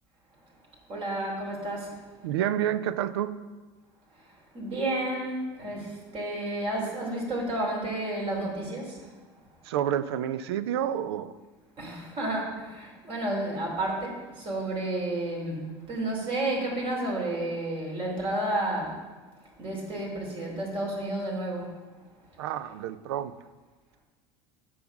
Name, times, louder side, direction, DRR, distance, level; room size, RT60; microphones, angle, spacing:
voice 1, 0.9-2.0 4.5-9.0 11.8-19.0 19.6-21.7, right 1 dB, 45° right, -2 dB, 2.9 m, -31 dB
voice 2, 2.2-3.4 9.7-11.3 22.4-23.3, right 10 dB, 85° right, 14 dB, 0.5 m, -29 dB
6.9 x 5.1 x 7.1 m, 1.3 s
supercardioid pair, 95°, 13 cm